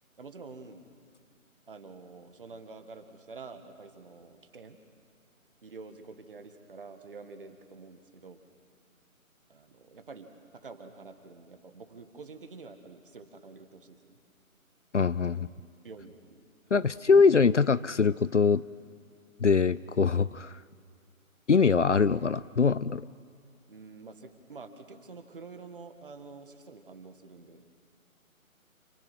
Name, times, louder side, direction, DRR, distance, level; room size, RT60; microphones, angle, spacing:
voice 1, 0.2-0.9 1.7-4.8 5.6-8.4 9.5-14.2 15.2-15.4 15.8-16.4 16.8-17.2 23.7-27.7, right 4 dB, 40° right, 7 dB, 1.9 m, -48 dB
voice 2, 14.9-15.5 16.7-18.6 19.4-20.6 21.5-23.0, left 5 dB, 55° left, 18 dB, 0.6 m, -23 dB
29.0 x 28.0 x 6.2 m, 2.2 s
figure-of-eight pair, 150°, 42 cm